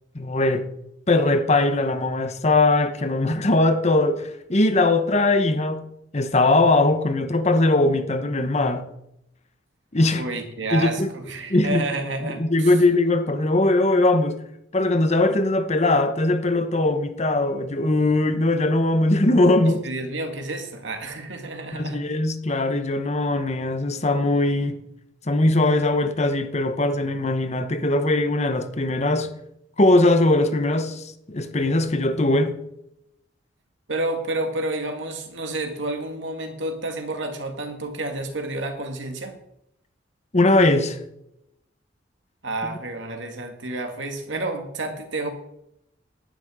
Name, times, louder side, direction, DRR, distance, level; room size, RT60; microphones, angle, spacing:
voice 1, 0.1-0.7 1.1-5.9 6.1-8.9 9.9-10.3 10.7-11.1 11.5-11.9 12.2-14.4 14.7-19.8 21.7-24.8 25.3-29.3 29.8-32.6 40.3-41.0, left 2 dB, 35° left, 1.1 m, -20 dB
voice 2, 10.1-12.7 19.8-22.0 33.9-39.4 42.4-45.3, right 2 dB, 75° right, 2.2 m, -30 dB
11.5 x 6.2 x 9.3 m
head